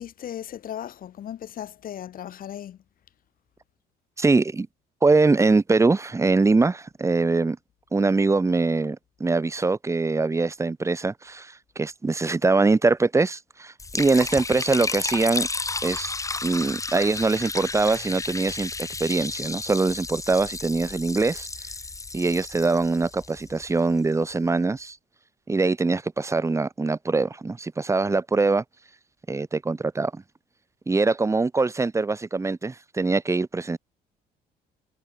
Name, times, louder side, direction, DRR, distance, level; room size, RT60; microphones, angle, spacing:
voice 1, 0.0-2.8, left 10 dB, 55° left, 6.6 m, -36 dB
voice 2, 4.2-4.7 5.0-7.6 7.9-15.5 15.8-16.1 16.4-21.5 22.1-25.0 25.5-28.6 29.3-30.2 30.9-33.8, right 3 dB, 15° right, 1.6 m, -23 dB
Liquid, 13.8-24.0, left 3 dB, 20° left, 7.0 m, -32 dB
cardioid pair, 110°, 17 cm